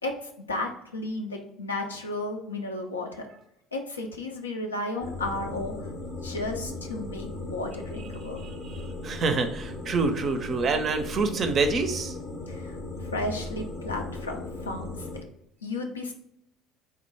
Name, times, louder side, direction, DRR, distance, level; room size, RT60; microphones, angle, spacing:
voice 1, 0.4-3.3 3.7-5.9 6.2-8.4 12.5-15.2 15.6-16.1, left 2 dB, 85° left, 2 dB, 0.4 m, -33 dB
sound 1, 5.0-15.2, left 2 dB, 45° left, 0.6 m, -37 dB
voice 2, 8.4-12.2, right 4 dB, 40° right, 7 dB, 0.4 m, -27 dB
3.5 x 2.2 x 3.2 m, 0.76 s
figure-of-eight pair, 60°, 0 cm